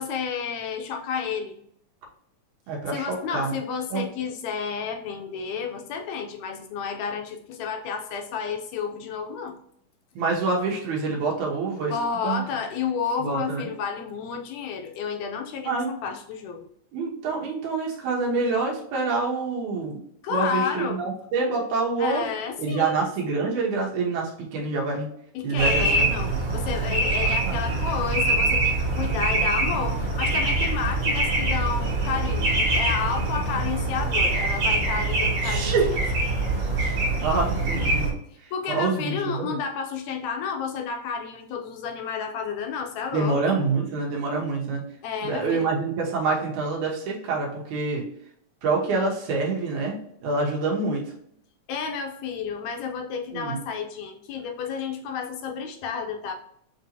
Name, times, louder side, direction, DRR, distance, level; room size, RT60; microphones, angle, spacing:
voice 1, 0.0-1.6 2.9-9.6 11.9-16.7 20.2-21.0 22.0-23.0 25.3-36.0 38.5-43.6 45.0-45.7 51.7-56.3, left 6 dB, 75° left, 3 dB, 1.9 m, -31 dB
voice 2, 2.7-3.5 3.9-4.0 10.2-12.0 12.2-12.4 13.2-13.7 15.7-15.9 16.9-20.0 20.3-22.3 22.6-25.1 25.4-26.2 27.2-27.6 35.4-35.9 36.8-38.1 38.7-39.6 43.1-44.9 45.2-48.0 48.6-51.1 53.3-53.6, right 4 dB, 85° right, -2 dB, 2.5 m, -26 dB
sound 1, 25.6-38.1, right 2 dB, 55° right, 2.1 m, -24 dB
6.8 x 2.8 x 2.7 m, 0.70 s
omnidirectional pair, 3.4 m